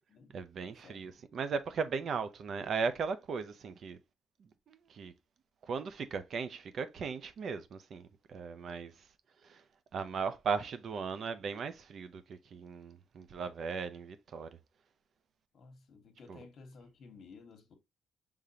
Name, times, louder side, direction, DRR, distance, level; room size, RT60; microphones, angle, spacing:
voice 1, 0.3-4.0 4.4-5.1 5.6-9.0 9.4-9.6 9.9-14.6 16.3-16.4, right 5 dB, 60° right, 0.6 m, -37 dB
voice 2, 0.8-1.2 15.5-17.7, left 4 dB, 60° left, 1.2 m, -55 dB
5.1 x 3.6 x 2.7 m
cardioid pair, 90°, 0 cm